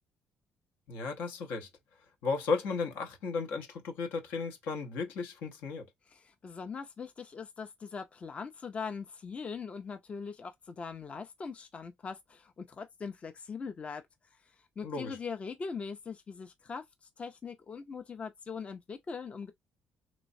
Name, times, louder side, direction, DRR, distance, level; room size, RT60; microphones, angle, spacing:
voice 1, 0.9-1.7 2.2-5.9 14.8-15.2, left 4 dB, 80° left, 0.8 m, -34 dB
voice 2, 6.1-14.0 14.8-19.5, left 5 dB, 35° left, 0.5 m, -41 dB
3.1 x 3.0 x 2.6 m
supercardioid pair, 80°, 3 cm